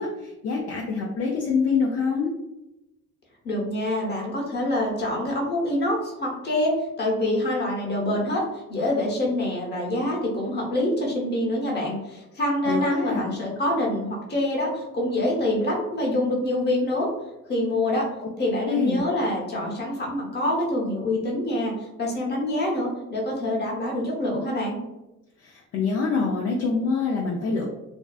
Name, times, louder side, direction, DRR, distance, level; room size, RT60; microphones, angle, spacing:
voice 1, 0.0-2.3 12.7-13.3 18.7-19.0 25.4-27.6, left 5 dB, 55° left, -1 dB, 0.5 m, -25 dB
voice 2, 3.4-17.1 17.5-18.1 18.4-24.8, left 1 dB, 35° left, -2 dB, 0.9 m, -26 dB
2.6 x 2.2 x 2.3 m, 0.96 s
cardioid pair, 90°, 30 cm